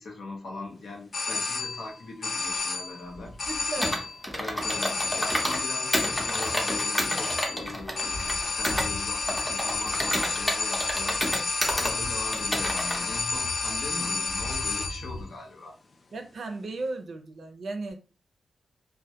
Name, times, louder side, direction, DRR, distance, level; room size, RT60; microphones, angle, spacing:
voice 1, 0.0-3.4 4.4-11.2 11.7-15.7, left 2 dB, 70° left, 1 dB, 0.7 m, -40 dB
sound 1, 1.1-1.9 2.2-3.0 3.4-4.2 4.6-15.1, left 4 dB, 45° left, 0.3 m, -30 dB
sound 2, 2.4-4.1 4.6-4.9 5.5-6.2 6.4-6.5 6.8-6.9 7.1-15.3, left 1 dB, 85° left, 1.0 m, -43 dB
voice 2, 3.4-4.0 16.1-18.0, right 2 dB, 65° right, 6 dB, 0.4 m, -35 dB
Computer keyboard, 3.8-5.6 5.9-8.9 9.3-11.9 12.3-13.0, equal, 5° left, 0.6 m, -30 dB
2.1 x 2.1 x 2.7 m, 0.35 s
wide cardioid pair, 105°, 0 cm